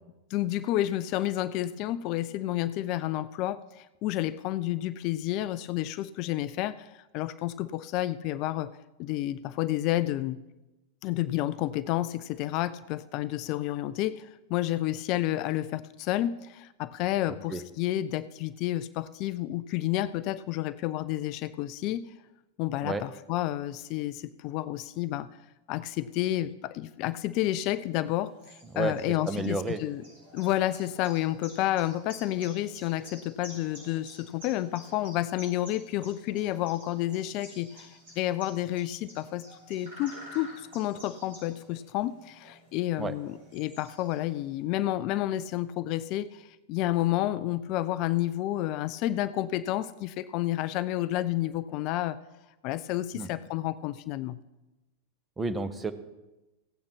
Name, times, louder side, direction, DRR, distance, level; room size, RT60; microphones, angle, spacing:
voice 1, 0.3-8.7 9.0-10.4 11.0-22.0 22.6-25.3 25.7-30.0 30.3-52.2 52.6-54.4, left 14 dB, 40° left, 16 dB, 0.3 m, -30 dB
sound 1, 28.0-44.6, equal, 55° right, 5.3 m, -51 dB
voice 2, 29.2-29.8 43.0-43.1 53.1-53.3 55.4-55.9, right 3 dB, 15° right, 10 dB, 0.9 m, -30 dB
16.0 x 8.5 x 4.2 m, 1.0 s
figure-of-eight pair, 90°, 0 cm